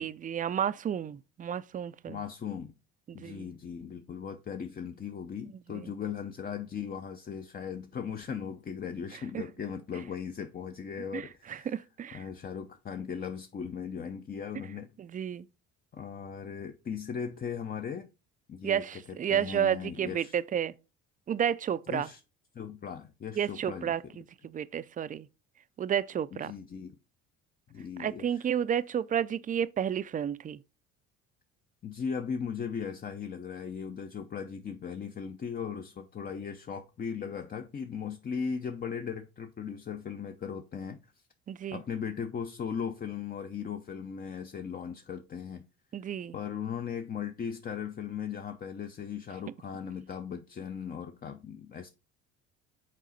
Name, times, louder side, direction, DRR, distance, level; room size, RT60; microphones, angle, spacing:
voice 1, 0.0-2.2 3.1-3.5 5.7-5.9 9.3-9.4 11.1-12.2 15.0-15.5 18.6-20.7 21.3-22.1 23.3-25.3 25.8-26.5 28.0-30.6 41.5-41.8 45.9-46.3, right 9 dB, 25° right, 0.4 m, -31 dB
voice 2, 2.1-2.7 3.1-11.8 12.1-14.9 15.9-18.1 18.5-19.0 19.3-20.4 21.9-22.2 22.5-24.0 26.3-26.9 27.7-28.4 31.8-41.0 41.7-45.6 46.3-51.9, left 7 dB, 30° left, 0.6 m, -38 dB
6.5 x 4.1 x 3.9 m
supercardioid pair, 85°, 31 cm